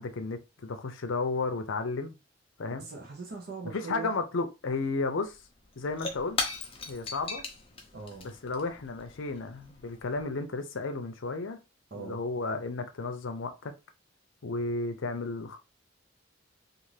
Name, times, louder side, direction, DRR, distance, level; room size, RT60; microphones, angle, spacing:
voice 1, 0.0-2.2 2.6-2.9 3.6-5.4 5.8-6.4 6.9-7.4 8.2-11.6 11.9-13.7 14.4-15.6, left 3 dB, 75° left, 0.6 m, -33 dB
voice 2, 2.8-4.1 7.9-8.3 11.9-12.2, right 4 dB, 50° right, 0.6 m, -41 dB
Shatter / Crushing, 5.3-10.2, left 3 dB, 30° left, 0.5 m, -39 dB
2.5 x 2.5 x 3.2 m
head